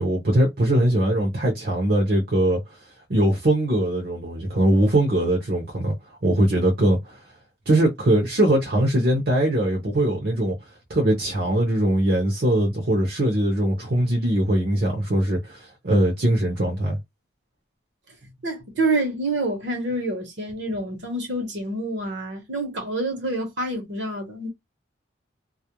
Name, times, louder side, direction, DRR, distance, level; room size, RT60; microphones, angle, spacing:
voice 1, 0.0-2.6 3.1-5.9 6.2-7.2 7.7-10.6 10.9-17.0, right 1 dB, 50° right, 0.7 m, -21 dB
voice 2, 18.4-24.5, right 2 dB, 65° right, 0.9 m, -27 dB
2.4 x 2.0 x 2.9 m
head